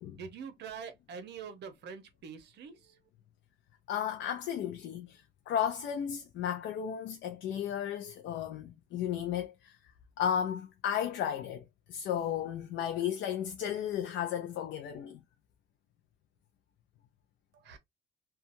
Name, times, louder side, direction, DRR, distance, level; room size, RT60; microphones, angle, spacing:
voice 1, 0.1-3.0 17.6-17.8, right 6 dB, 65° right, 0.8 m, -45 dB
voice 2, 3.9-9.8 10.2-15.2, left 9 dB, 75° left, 0.5 m, -34 dB
2.8 x 2.3 x 2.5 m
cardioid pair, 130°, 19 cm